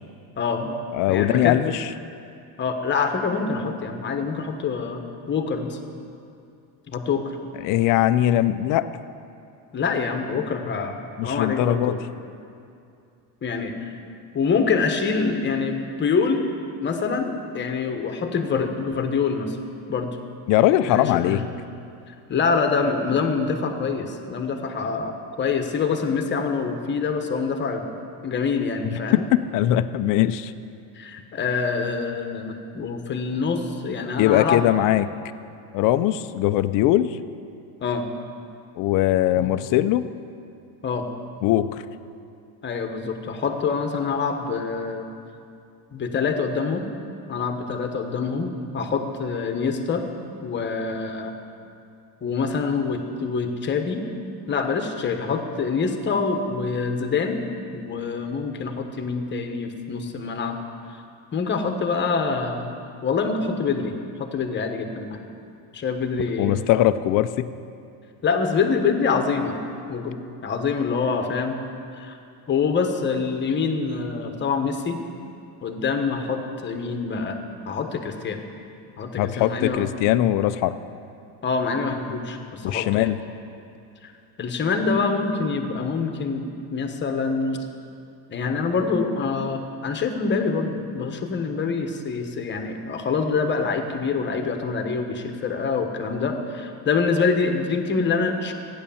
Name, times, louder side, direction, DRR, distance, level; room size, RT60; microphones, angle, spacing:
voice 1, 0.4-0.8 1.1-1.6 2.6-5.0 5.3-5.8 6.9-7.4 9.7-12.0 13.4-13.7 14.3-16.4 16.8-19.6 19.9-20.2 20.8-21.4 22.1-27.9 28.2-29.3 31.0-34.7 37.8-38.0 39.4-39.5 40.8-41.0 42.6-45.1 45.9-46.9 47.3-50.0 50.4-51.3 52.2-54.0 54.5-57.4 57.7-60.6 61.3-62.7 63.0-65.2 65.7-66.5 68.2-69.6 69.9-71.6 72.0-72.1 72.5-75.0 75.6-77.4 77.6-78.4 79.0-79.9 81.4-83.1 84.0-84.1 84.4-86.4 86.7-87.6 88.3-98.5, left 5 dB, 25° left, 5 dB, 1.2 m, -25 dB
voice 2, 0.9-1.9 7.6-8.9 11.2-12.0 20.5-21.4 28.9-30.5 34.2-35.1 35.7-37.2 38.8-40.0 41.4-41.8 66.4-67.5 79.2-80.8 82.6-83.2, left 13 dB, 45° left, 12 dB, 0.5 m, -21 dB
14.5 x 9.8 x 7.1 m, 2.5 s
cardioid pair, 150°, 44 cm